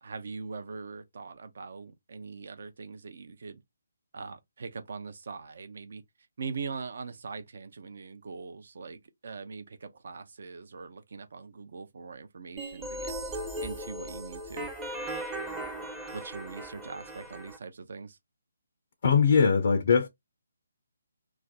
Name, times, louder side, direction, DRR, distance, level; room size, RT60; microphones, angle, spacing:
voice 1, 0.0-3.6 4.1-6.0 6.4-14.7 16.1-18.2, right 4 dB, 55° right, 0.5 m, -42 dB
sound 1, 12.6-17.6, right 1 dB, 15° right, 0.6 m, -38 dB
voice 2, 19.0-20.1, left 6 dB, 50° left, 0.4 m, -21 dB
2.4 x 2.1 x 3.9 m
figure-of-eight pair, 145°, 0 cm